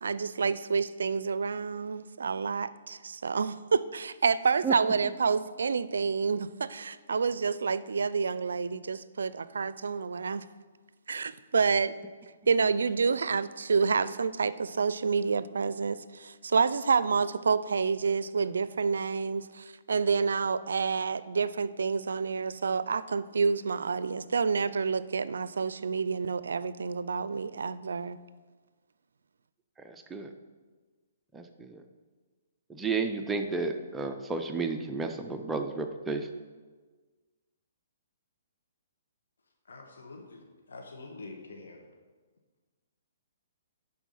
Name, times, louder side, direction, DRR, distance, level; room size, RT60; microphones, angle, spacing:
voice 1, 0.0-10.4 11.1-12.0 12.5-28.2, right 5 dB, 85° right, 16 dB, 0.4 m, -28 dB
voice 2, 29.8-30.3 31.3-31.8 32.7-36.3, right 4 dB, 10° right, 5 dB, 0.5 m, -32 dB
voice 3, 39.7-40.4 40.7-41.8, left 3 dB, 85° left, 2 dB, 1.3 m, -45 dB
11.0 x 4.5 x 5.5 m, 1.4 s
hypercardioid pair, 150°, 0 cm